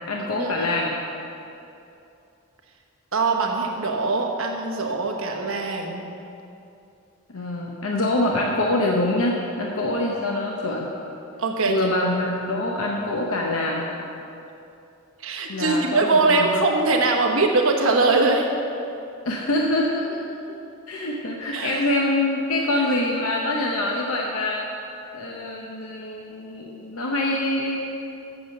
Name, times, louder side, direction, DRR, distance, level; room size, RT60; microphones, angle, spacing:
voice 1, 0.1-0.9 7.3-10.9 11.7-13.9 15.5-16.5 19.2-20.2 20.9-24.7 25.1-27.9, left 2 dB, 75° left, -1 dB, 0.8 m, -25 dB
voice 2, 3.1-6.0 11.4-11.8 15.2-18.5 21.5-21.9, right 3 dB, 70° right, 2 dB, 1.1 m, -22 dB
7.9 x 6.9 x 6.5 m, 2.7 s
head